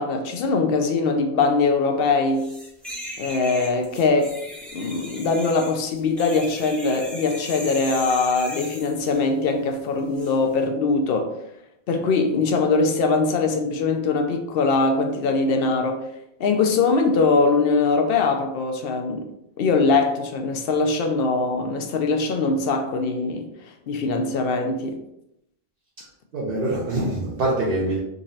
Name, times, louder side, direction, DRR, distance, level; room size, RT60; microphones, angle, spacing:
voice 1, 0.0-2.5 3.2-4.4 4.7-11.3 11.9-16.1 16.4-19.3 19.6-23.5 23.9-25.0, left 3 dB, 70° left, 0.7 m, -22 dB
sound 1, 2.4-9.2 10.1-10.3, equal, ahead, 0.6 m, -37 dB
voice 2, 26.3-28.0, right 2 dB, 65° right, 0.9 m, -24 dB
3.8 x 2.9 x 2.7 m
omnidirectional pair, 1.1 m